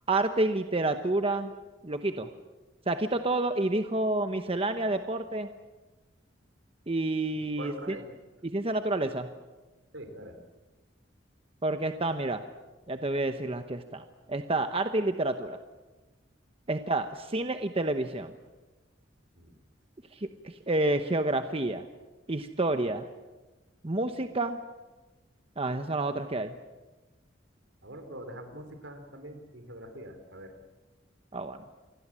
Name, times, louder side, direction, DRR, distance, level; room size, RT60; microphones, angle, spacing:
voice 1, 0.1-1.5 1.8-2.3 2.9-5.5 6.9-8.0 8.4-9.3 11.6-12.4 12.9-15.6 16.7-18.3 20.1-21.9 22.3-23.1 23.8-24.6 25.6-26.5 31.3-31.6, right 2 dB, 30° right, 8 dB, 1.0 m, -29 dB
voice 2, 7.4-8.1 9.9-10.4 19.3-19.6 27.8-30.5, right 1 dB, 75° right, 7 dB, 4.1 m, -43 dB
27.5 x 21.0 x 7.6 m, 1.2 s
head